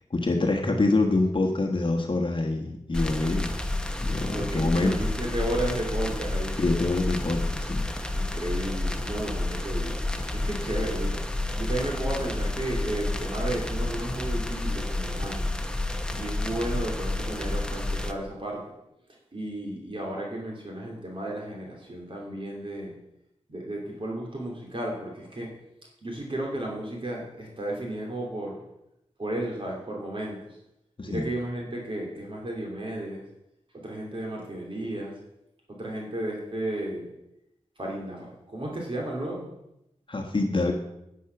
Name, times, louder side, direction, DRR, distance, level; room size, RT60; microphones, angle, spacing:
voice 1, 0.1-3.5 4.0-5.0 6.6-7.8 31.0-31.2 40.1-40.7, left 2 dB, 45° left, 1 dB, 1.3 m, -25 dB
sound 1, 2.9-18.1, left 2 dB, 5° left, 1.1 m, -30 dB
voice 2, 4.3-6.6 8.1-10.0 10.3-15.5 16.1-18.6 19.3-22.9 23.5-25.5 26.0-28.6 29.2-30.6 31.1-33.2 33.7-35.1 35.7-37.1 37.8-39.5, right 1 dB, 45° right, -2 dB, 3.0 m, -33 dB
10.0 x 9.7 x 5.9 m, 0.86 s
wide cardioid pair, 100°, 12 cm